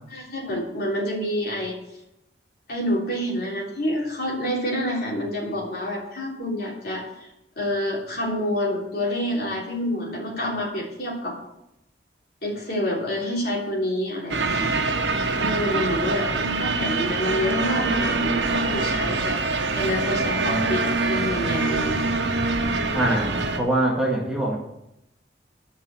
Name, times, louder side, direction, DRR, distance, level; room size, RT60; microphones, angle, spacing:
voice 1, 0.1-1.7 2.7-7.0 7.6-11.3 12.4-14.8 15.4-19.4 19.7-22.0, left 1 dB, 55° left, -2 dB, 3.3 m, -28 dB
sound 1, 14.3-23.6, right 3 dB, 85° right, 1.2 m, -24 dB
voice 2, 22.9-24.6, right 1 dB, 5° right, -4 dB, 1.9 m, -23 dB
11.5 x 5.6 x 7.7 m, 0.85 s
head